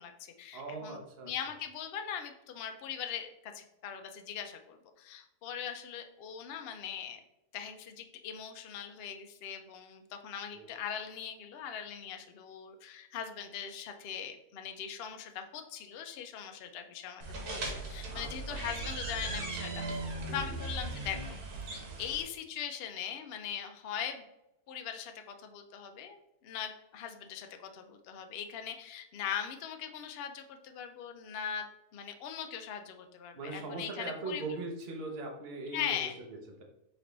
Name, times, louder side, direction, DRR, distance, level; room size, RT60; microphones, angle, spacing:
voice 1, 0.0-1.0 1.2-7.2 7.5-20.0 20.3-21.2 21.7-24.2 24.7-31.7 31.9-34.4 35.7-36.2, left 8 dB, 65° left, 6 dB, 0.6 m, -40 dB
voice 2, 0.5-1.3 10.5-10.7 18.1-18.6 20.2-20.6 33.3-35.9 36.3-36.6, right 3 dB, 45° right, 1 dB, 1.0 m, -40 dB
sound 1, 17.2-22.2, right 2 dB, 85° right, 1.6 m, -38 dB
4.0 x 3.3 x 3.9 m, 0.86 s
omnidirectional pair, 1.6 m